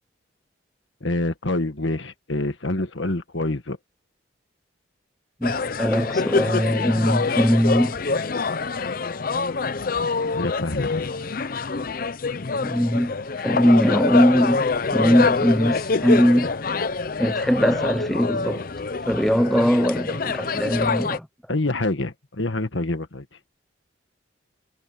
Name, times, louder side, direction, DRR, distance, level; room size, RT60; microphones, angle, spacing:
voice 1, 1.0-3.8 10.3-11.1 21.5-23.2, left 2 dB, 70° left, 1.6 m, -26 dB
sound 1, 5.4-21.2, left 4 dB, 45° left, 0.6 m, -25 dB
voice 2, 5.4-7.9 12.6-16.5 17.2-18.7 19.1-21.3, equal, ahead, 0.5 m, -21 dB
head